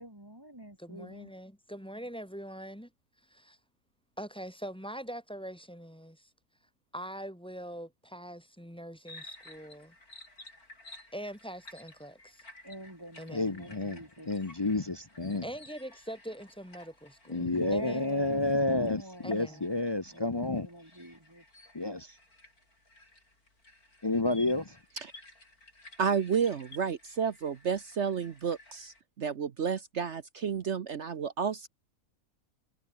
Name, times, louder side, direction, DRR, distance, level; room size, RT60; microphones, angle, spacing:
voice 1, 0.0-1.3 12.6-14.3 17.3-19.8 20.1-21.4, right 1 dB, 15° right, 4.2 m, -45 dB
voice 2, 0.8-2.9 3.3-3.6 4.2-6.3 6.9-9.9 11.1-12.4 13.2-13.5 15.4-18.0 19.2-19.6, equal, 5° left, 3.1 m, -43 dB
sound 1, 9.0-29.0, left 2 dB, 80° left, 8.6 m, -54 dB
voice 3, 13.3-15.4 17.3-20.7 21.7-22.2 24.0-24.8, left 2 dB, 30° left, 0.4 m, -30 dB
voice 4, 26.0-31.7, right 6 dB, 55° right, 1.2 m, -31 dB
omnidirectional pair, 1.5 m